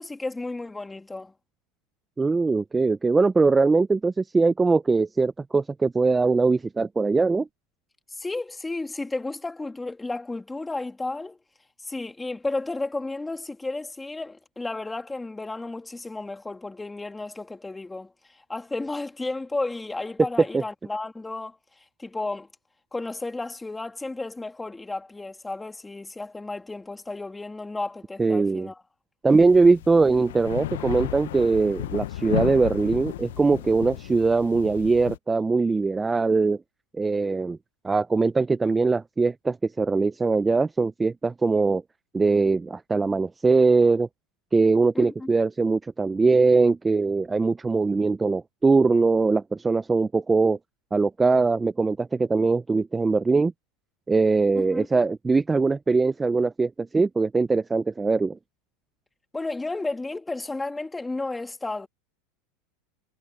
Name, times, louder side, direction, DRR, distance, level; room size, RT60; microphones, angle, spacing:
voice 1, 0.0-1.3 8.1-11.4 11.8-21.6 22.0-22.5 22.9-28.8 44.9-45.3 54.5-54.9 59.3-61.9, left 2 dB, 10° left, 2.4 m, -33 dB
voice 2, 2.2-7.5 20.5-20.6 28.2-28.7 29.2-36.6 37.0-37.6 37.8-41.8 42.1-44.1 44.5-50.6 50.9-53.5 54.1-58.4, right 4 dB, 15° right, 0.5 m, -21 dB
sound 1, 29.3-35.2, left 14 dB, 85° left, 0.5 m, -34 dB
supercardioid pair, 125°, 0 cm